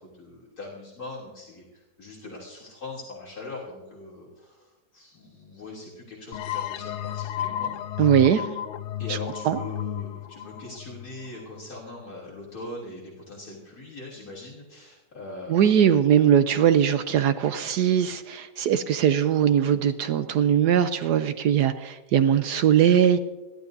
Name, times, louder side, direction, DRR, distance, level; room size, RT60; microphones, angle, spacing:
voice 1, 0.0-7.8 8.0-8.1 9.0-15.9, left 2 dB, 60° left, -5 dB, 3.5 m, -41 dB
sound 1, 6.3-11.8, left 11 dB, 85° left, 0.6 m, -33 dB
voice 2, 8.0-8.6 9.1-9.2 9.4-9.6 15.5-23.2, right 9 dB, 75° right, 10 dB, 1.2 m, -21 dB
29.0 x 12.0 x 2.7 m, 1.1 s
omnidirectional pair, 1.8 m